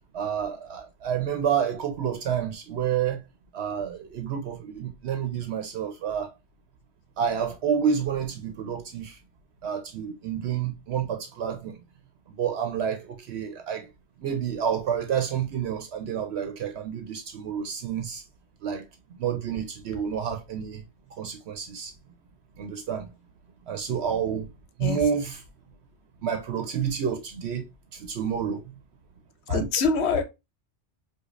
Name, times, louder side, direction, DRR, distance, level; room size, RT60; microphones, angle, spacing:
voice 1, 0.1-3.2 3.5-6.3 7.2-9.2 9.6-11.8 12.3-13.9 14.2-18.2 18.6-18.9 19.2-20.8 21.2-21.9 22.6-23.1 23.7-24.5 24.8-25.4 26.2-28.7 29.5-29.7, right 8 dB, 75° right, 0.8 m, -29 dB
voice 2, 29.5-30.2, left 5 dB, 75° left, 0.9 m, -24 dB
4.9 x 2.3 x 2.4 m
omnidirectional pair, 1.1 m